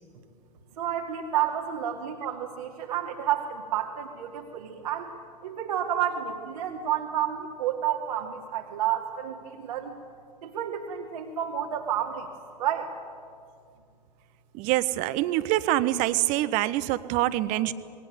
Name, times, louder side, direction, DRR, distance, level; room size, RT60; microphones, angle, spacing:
voice 1, 0.8-5.1 5.4-10.0 10.4-12.3 12.6-12.9, right 10 dB, 60° right, -1 dB, 2.5 m, -30 dB
voice 2, 14.5-17.7, right 15 dB, 40° right, 15 dB, 1.1 m, -25 dB
26.5 x 21.0 x 9.4 m, 2.3 s
figure-of-eight pair, 90°, 21 cm